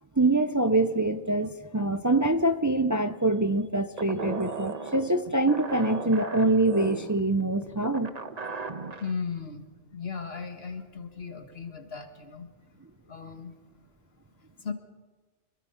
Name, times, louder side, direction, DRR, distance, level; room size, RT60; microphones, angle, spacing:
voice 1, 0.2-8.1, right 2 dB, 20° right, 0.7 m, -25 dB
sound 1, 4.0-9.1, right 4 dB, 40° right, 1.2 m, -37 dB
voice 2, 9.0-9.6 9.9-12.5 13.1-13.5 14.6-14.7, left 5 dB, 70° left, 2.0 m, -36 dB
26.5 x 22.0 x 5.7 m
omnidirectional pair, 1.1 m